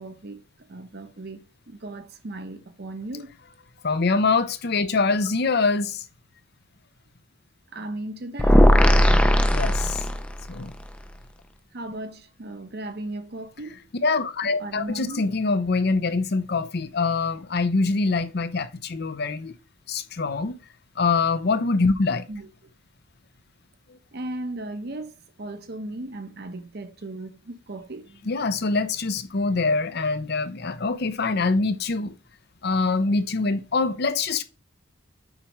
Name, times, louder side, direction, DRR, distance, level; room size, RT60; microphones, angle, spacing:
voice 1, 0.0-3.4 7.7-8.8 11.7-13.9 14.6-15.2 22.3-22.5 24.1-28.3, right 2 dB, 55° right, 0.9 m, -36 dB
voice 2, 3.8-6.0 9.5-10.0 10.5-10.7 14.0-19.5 19.9-20.6 21.0-22.3 28.3-32.2 32.6-34.4, left 3 dB, 55° left, 0.6 m, -24 dB
sound 1, 8.4-10.5, equal, 5° left, 0.5 m, -17 dB
7.4 x 4.8 x 3.1 m
head